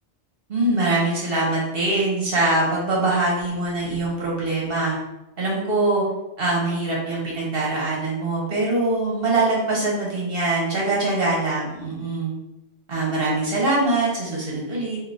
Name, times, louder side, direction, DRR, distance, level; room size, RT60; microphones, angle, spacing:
voice 1, 0.5-5.0 5.4-6.0 6.4-12.3 12.9-15.0, right 2 dB, 60° right, -4 dB, 1.1 m, -23 dB
3.7 x 2.7 x 3.8 m, 0.96 s
omnidirectional pair, 1.2 m